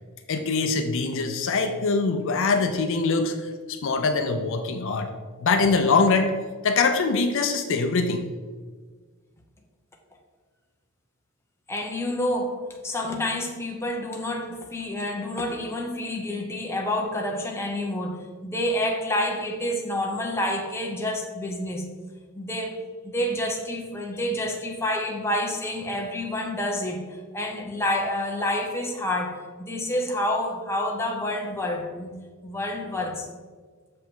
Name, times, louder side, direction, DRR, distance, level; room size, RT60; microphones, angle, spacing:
voice 1, 0.3-5.1 5.4-6.3 6.6-8.3, left 4 dB, 60° left, 6 dB, 0.5 m, -23 dB
voice 2, 11.7-21.8 22.3-22.8 23.0-32.1 32.4-33.3, left 1 dB, 10° left, 1 dB, 0.8 m, -28 dB
6.7 x 5.3 x 3.8 m, 1.5 s
head